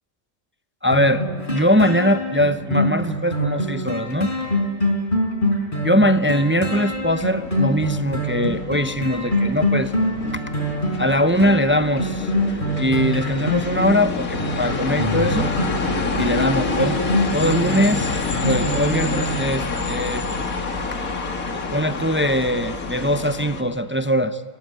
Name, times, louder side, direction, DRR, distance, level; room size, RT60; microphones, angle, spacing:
voice 1, 0.8-4.3 5.8-9.9 11.0-12.3 12.8-15.5 16.2-17.0 17.3-20.3 21.5-24.4, equal, 15° right, 10 dB, 0.5 m, -21 dB
sound 1, 0.9-19.6 20.1-20.2, left 1 dB, 35° left, 4.7 m, -24 dB
sound 2, 6.9-23.6, left 3 dB, 90° left, 2.3 m, -28 dB
30.0 x 15.5 x 9.1 m, 2.1 s
omnidirectional pair, 1.4 m